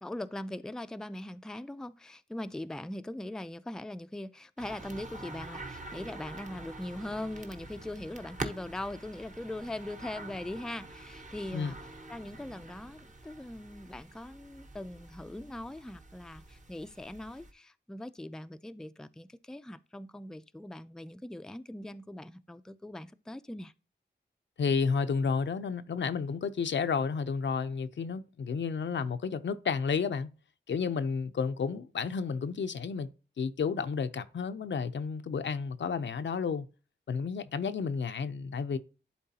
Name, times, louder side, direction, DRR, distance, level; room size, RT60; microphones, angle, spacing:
voice 1, 0.0-11.8 12.1-23.7, left 1 dB, 5° left, 0.3 m, -41 dB
sound 1, 4.6-17.5, right 2 dB, 40° right, 0.9 m, -46 dB
voice 2, 24.6-30.3 30.7-33.1 33.4-36.7 37.1-38.8, left 5 dB, 80° left, 0.6 m, -31 dB
11.5 x 3.9 x 2.8 m
wide cardioid pair, 90°, 19 cm